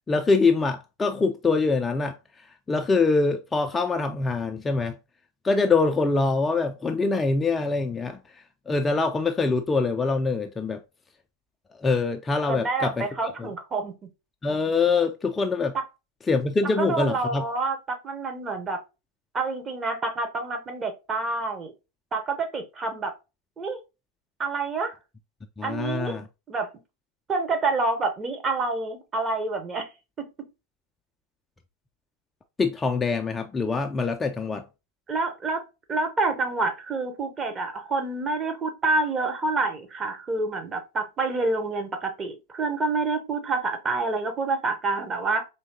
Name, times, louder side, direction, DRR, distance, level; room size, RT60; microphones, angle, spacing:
voice 1, 0.1-5.0 5.4-10.8 11.8-13.5 14.4-15.8 16.3-17.4 25.6-26.3 32.6-34.7, left 4 dB, 15° left, 0.3 m, -24 dB
voice 2, 12.5-13.9 16.8-18.8 19.3-21.7 22.1-23.1 23.6-23.8 24.4-24.9 25.6-26.2 26.5-26.7 27.3-29.9 30.2-30.3 35.1-35.6 35.9-45.5, right 3 dB, 20° right, 0.8 m, -27 dB
4.5 x 2.8 x 2.7 m
figure-of-eight pair, 90°, 0 cm